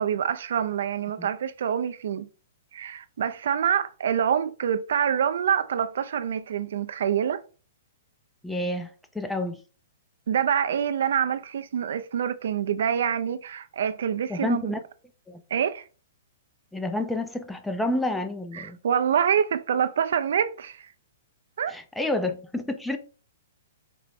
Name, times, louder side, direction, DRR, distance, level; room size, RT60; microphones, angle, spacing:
voice 1, 0.0-2.3 2.7-7.4 10.3-14.7 15.5-15.9 18.5-20.9 21.6-21.8, right 8 dB, 70° right, 0.4 m, -26 dB
voice 2, 8.4-9.6 14.3-14.8 15.3-15.4 16.7-18.8 21.7-23.0, left 2 dB, 5° left, 0.4 m, -29 dB
4.5 x 2.1 x 4.1 m
hypercardioid pair, 150°, 0 cm